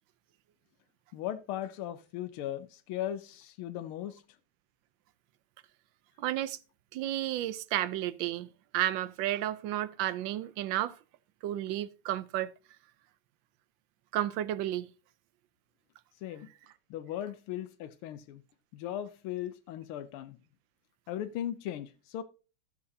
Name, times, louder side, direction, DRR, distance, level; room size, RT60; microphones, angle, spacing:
voice 1, 1.1-4.2 16.2-16.5 16.9-18.4 18.7-20.4 21.1-22.2, left 11 dB, 90° left, 1.6 m, -38 dB
voice 2, 6.2-6.6 6.9-11.0 11.4-12.5 14.1-14.9, right 13 dB, 70° right, 1.3 m, -32 dB
16.0 x 6.9 x 2.7 m
omnidirectional pair, 2.3 m